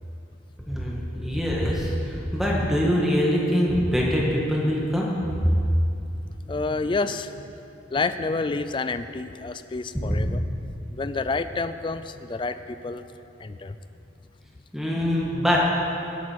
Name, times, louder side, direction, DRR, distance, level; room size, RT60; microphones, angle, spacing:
voice 1, 0.7-5.1 10.1-10.2 14.7-15.6, equal, ahead, -4 dB, 1.9 m, -24 dB
voice 2, 6.5-7.5 7.9-10.4 10.9-13.1 13.4-13.7, left 3 dB, 25° left, 11 dB, 0.3 m, -29 dB
17.5 x 8.3 x 4.7 m, 2.7 s
head